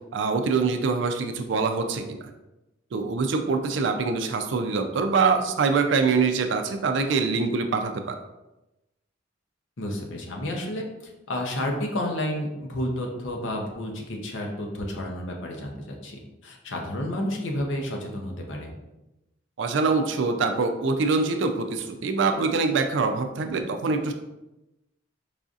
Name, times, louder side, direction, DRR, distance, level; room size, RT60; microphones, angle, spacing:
voice 1, 0.1-2.2 2.9-8.2 19.6-24.1, right 4 dB, 65° right, 6 dB, 0.4 m, -24 dB
voice 2, 9.8-18.7, left 1 dB, 70° left, 1 dB, 0.7 m, -31 dB
4.8 x 2.6 x 2.4 m, 0.97 s
head